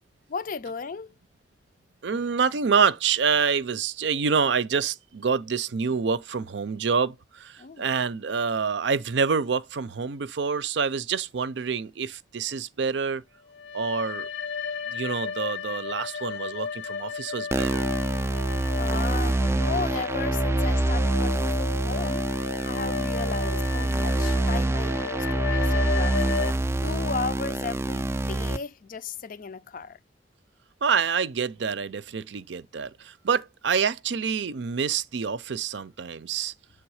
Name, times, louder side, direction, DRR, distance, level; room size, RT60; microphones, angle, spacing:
voice 1, 0.3-1.1 7.6-7.9 18.8-22.2 22.7-26.3 26.8-30.0, left 5 dB, 50° left, 0.5 m, -35 dB
voice 2, 2.0-13.2 13.7-14.3 14.9-17.9 30.8-36.5, right 6 dB, 70° right, 0.5 m, -27 dB
sound 1, 13.5-26.5, left 5 dB, 75° left, 1.0 m, -34 dB
sound 2, 17.5-28.6, right 1 dB, 15° right, 0.3 m, -26 dB
7.9 x 3.4 x 4.8 m
head